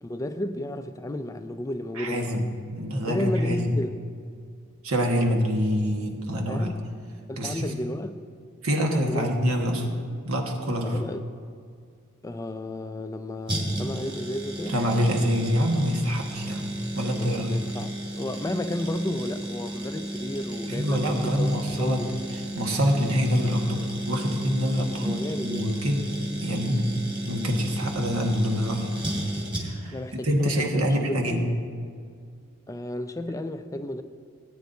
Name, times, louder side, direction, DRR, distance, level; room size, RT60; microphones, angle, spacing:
voice 1, 0.0-2.4 3.1-4.0 6.5-6.8 7.3-8.2 8.8-9.3 10.8-11.4 12.2-14.8 17.2-22.1 24.8-25.7 29.8-31.4 32.7-34.0, left 1 dB, 15° left, 0.3 m, -33 dB
voice 2, 1.9-3.7 4.8-6.7 7.4-7.8 8.6-9.9 10.2-11.0 14.7-17.6 20.7-22.0 22.3-26.1 26.4-27.0 27.2-28.9 29.5-30.0 30.2-31.4, equal, 75° right, 1.4 m, -26 dB
sound 1, 13.5-30.0 30.2-30.3, right 1 dB, 25° right, 2.5 m, -33 dB
17.5 x 9.3 x 2.7 m
head